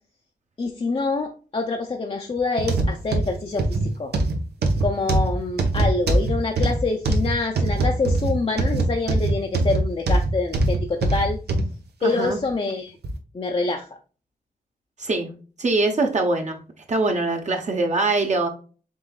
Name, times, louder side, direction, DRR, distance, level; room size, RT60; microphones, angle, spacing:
voice 1, 0.6-4.1 4.8-11.4 12.0-13.0 13.3-13.9, left 3 dB, 35° left, 2 dB, 0.6 m, -26 dB
sound 1, 2.6-11.7 12.2-12.4 13.0-13.1, right 2 dB, 80° right, 0.9 m, -22 dB
voice 2, 12.0-12.4 15.0-15.3 15.6-16.6 16.9-18.5, right 3 dB, 45° right, 3 dB, 0.9 m, -23 dB
5.3 x 3.8 x 2.3 m, 0.37 s
wide cardioid pair, 105°, 17 cm